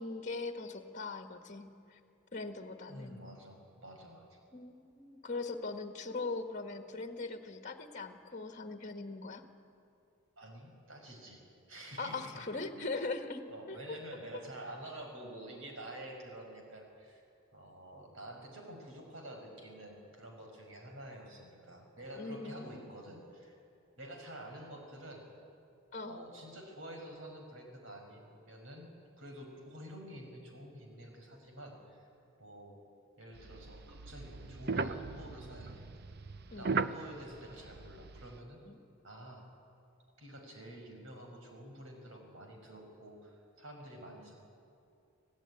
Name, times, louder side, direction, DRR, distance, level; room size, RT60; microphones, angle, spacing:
voice 1, 0.0-2.0 2.3-3.2 4.5-9.4 12.0-14.0 22.1-22.9 25.9-26.2 36.5-36.7 38.6-38.8, left 3 dB, 35° left, 6 dB, 1.5 m, -41 dB
voice 2, 2.9-4.4 10.4-12.9 13.5-17.2 17.5-23.5 24.0-25.2 26.0-28.9 29.2-32.1 32.4-32.8 33.2-35.9 36.6-38.6 39.0-39.5 40.2-44.4, right 1 dB, 70° right, 2 dB, 5.7 m, -49 dB
sound 1, 33.4-38.4, right 4 dB, 50° right, 0.7 m, -38 dB
25.5 x 17.0 x 9.9 m, 2.5 s
head